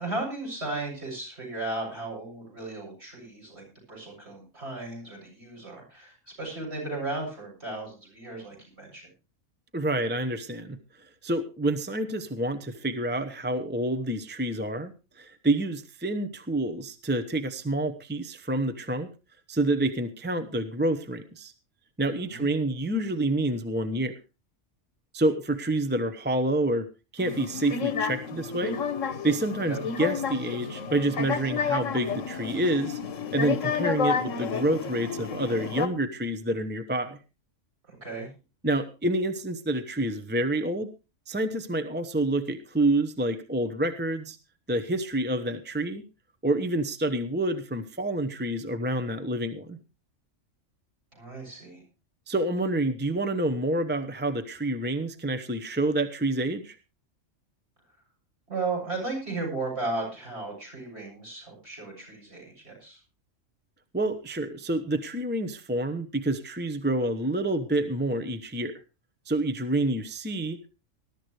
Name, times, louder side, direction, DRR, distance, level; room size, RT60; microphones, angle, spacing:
voice 1, 0.0-9.1 22.3-22.5 29.6-29.8 37.9-38.3 51.1-51.8 58.5-63.0, right 2 dB, 55° right, -2 dB, 7.7 m, -35 dB
voice 2, 9.7-10.8 11.2-19.1 19.5-21.5 22.0-24.1 25.1-26.9 27.1-28.8 29.2-33.0 33.3-37.2 38.6-40.9 41.3-44.4 44.7-46.0 46.4-49.8 52.3-56.8 63.9-68.7 69.3-70.7, right 1 dB, 10° right, 7 dB, 0.8 m, -28 dB
sound 1, 27.2-35.9, left 6 dB, 90° left, 1.5 m, -31 dB
20.0 x 12.0 x 3.1 m, 0.30 s
omnidirectional pair, 1.3 m